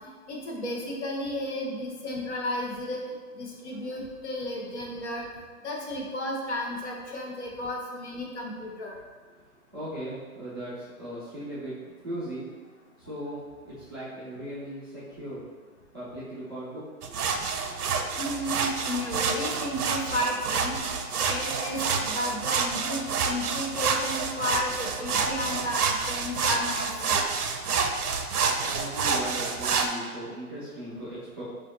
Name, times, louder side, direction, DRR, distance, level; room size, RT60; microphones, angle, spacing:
voice 1, 0.3-3.1 3.4-5.3 5.6-9.0 18.2-20.8 21.2-27.2, left 1 dB, 50° left, -1 dB, 0.8 m, -33 dB
voice 2, 9.7-11.7 12.0-12.4 13.0-15.4 15.9-16.9 28.6-31.4, right 1 dB, 15° right, -13 dB, 0.4 m, -38 dB
sound 1, 17.0-29.9, right 5 dB, 75° right, 0.6 m, -28 dB
4.9 x 2.5 x 2.6 m, 1.4 s
hypercardioid pair, 145°, 45 cm